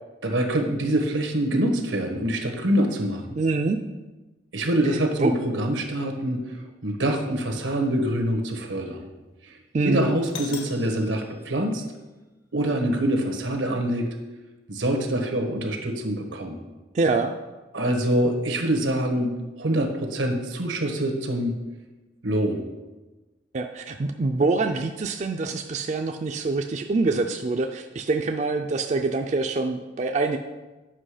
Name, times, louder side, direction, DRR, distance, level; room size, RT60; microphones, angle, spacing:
voice 1, 0.2-3.2 4.5-6.5 6.8-9.1 9.4-9.6 9.8-11.8 12.5-14.1 14.7-16.6 17.7-21.6 22.2-22.6, right 1 dB, 90° right, 4 dB, 1.3 m, -25 dB
voice 2, 3.4-3.8 5.2-5.3 9.7-10.1 16.9-17.3 23.5-30.4, right 3 dB, 40° right, 5 dB, 0.4 m, -25 dB
Doorbell, 10.2-12.2, left 6 dB, 85° left, 1.0 m, -42 dB
7.6 x 6.0 x 4.9 m, 1.2 s
head